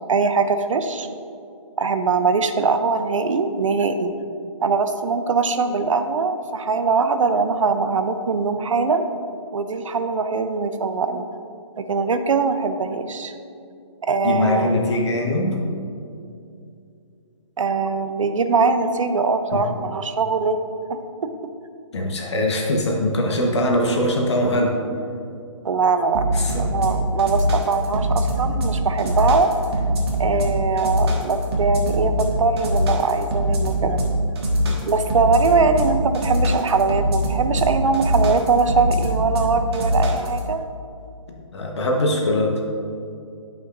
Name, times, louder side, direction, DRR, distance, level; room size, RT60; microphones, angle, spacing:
voice 1, 0.1-1.1 1.8-4.1 4.6-9.1 9.5-11.2 11.8-13.3 14.1-14.7 17.6-20.6 20.9-21.3 25.6-26.2 26.6-29.5 30.2-34.0 34.9-40.6, right 4 dB, 70° right, 8 dB, 0.6 m, -21 dB
voice 2, 14.2-15.6 19.5-19.6 21.9-24.8 26.3-26.7 34.7-34.8 41.5-42.7, left 1 dB, 55° left, 0 dB, 1.1 m, -21 dB
sound 1, 26.1-40.4, right 1 dB, 50° right, 1.5 m, -22 dB
9.4 x 5.7 x 2.6 m, 2.5 s
figure-of-eight pair, 150°, 17 cm